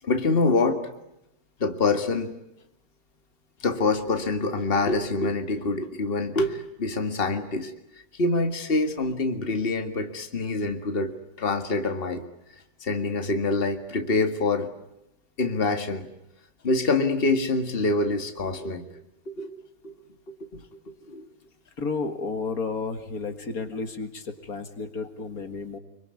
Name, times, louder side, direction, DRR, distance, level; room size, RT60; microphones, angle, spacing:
voice 1, 0.0-0.9 1.6-2.3 3.6-7.7 8.2-12.2 12.8-14.7 15.4-16.1 16.6-18.8 19.3-19.6 19.8-20.0 20.4-20.5 20.9-21.2, left 3 dB, 35° left, 7 dB, 2.1 m, -25 dB
voice 2, 21.8-25.8, left 4 dB, 65° left, 8 dB, 2.3 m, -32 dB
26.0 x 24.0 x 9.6 m, 0.85 s
omnidirectional pair, 1.6 m